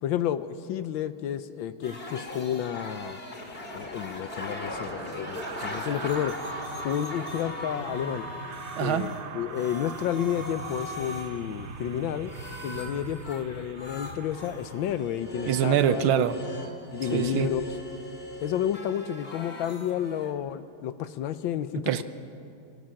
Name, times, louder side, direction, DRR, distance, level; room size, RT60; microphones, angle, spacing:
voice 1, 0.0-3.2 3.7-6.4 6.8-8.2 8.8-12.3 12.6-16.2 16.9-17.7 18.4-21.9, left 10 dB, 75° left, 13 dB, 1.4 m, -31 dB
sound 1, 1.8-9.2 9.5-13.4 13.8-20.3, left 1 dB, 30° left, 2.2 m, -39 dB
sound 2, 2.9-16.3 16.6-16.8, right 6 dB, 50° right, 0.8 m, -43 dB
voice 2, 8.8-9.1 15.5-16.4 17.1-17.5 21.9-22.0, right 10 dB, 80° right, 12 dB, 1.6 m, -24 dB
27.0 x 17.5 x 6.4 m, 2.5 s
omnidirectional pair, 2.3 m